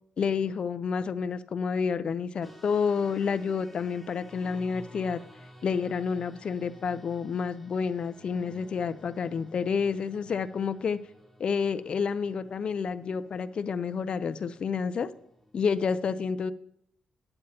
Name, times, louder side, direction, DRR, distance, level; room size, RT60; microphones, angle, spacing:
voice 1, 0.2-5.2 5.6-11.0 11.4-15.1 15.5-16.5, left 6 dB, 40° left, 12 dB, 0.4 m, -29 dB
sound 1, 2.4-15.6, equal, 5° right, 0.8 m, -53 dB
8.8 x 8.8 x 4.2 m, 0.73 s
wide cardioid pair, 165°, 3 cm